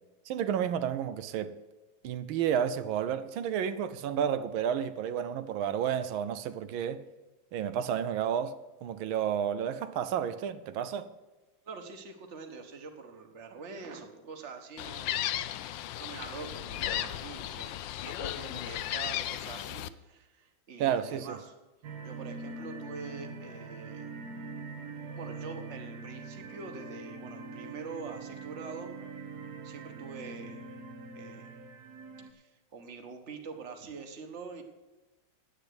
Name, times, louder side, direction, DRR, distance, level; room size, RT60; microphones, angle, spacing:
voice 1, 0.3-1.6 2.0-7.0 7.5-11.1 20.8-21.4, right 9 dB, 90° right, 1.5 m, -31 dB
voice 2, 11.6-15.3 15.5-17.8 18.0-21.6 22.0-24.2 25.1-28.9 29.6-30.8 31.1-31.7 32.3-34.6, right 4 dB, 40° right, 1.5 m, -45 dB
Gull seagull, 14.8-19.9, left 13 dB, 75° left, 1.2 m, -35 dB
sound 1, 21.8-32.3, right 3 dB, 60° right, 1.4 m, -43 dB
10.0 x 8.8 x 8.0 m
omnidirectional pair, 2.2 m